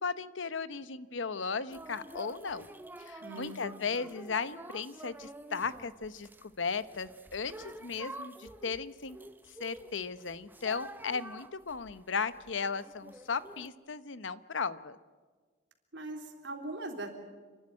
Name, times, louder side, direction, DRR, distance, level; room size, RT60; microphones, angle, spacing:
voice 1, 0.0-2.7 3.0-9.2 9.6-15.0, left 5 dB, 80° left, 15 dB, 0.9 m, -36 dB
sound 1, 1.7-13.7, right 1 dB, 10° right, 0.8 m, -49 dB
voice 2, 3.2-3.6 15.9-17.1, right 2 dB, 70° right, 3 dB, 3.5 m, -40 dB
29.5 x 12.0 x 9.8 m, 1.4 s
head